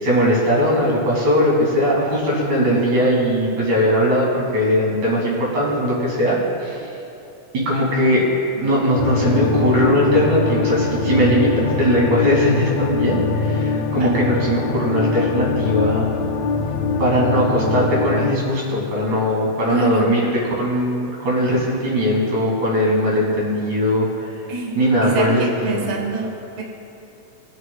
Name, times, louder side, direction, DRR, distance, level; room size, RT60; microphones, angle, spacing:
voice 1, 0.0-6.9 7.5-8.3 8.6-16.1 17.0-24.3 24.8-25.4 25.7-25.9, equal, 65° right, -5 dB, 3.8 m, -19 dB
sound 1, 9.0-18.3, left 4 dB, 80° left, 1.5 m, -23 dB
voice 2, 19.7-20.1 24.5-26.6, right 3 dB, 85° right, -1 dB, 0.6 m, -25 dB
21.5 x 8.2 x 2.3 m, 2.8 s
omnidirectional pair, 3.7 m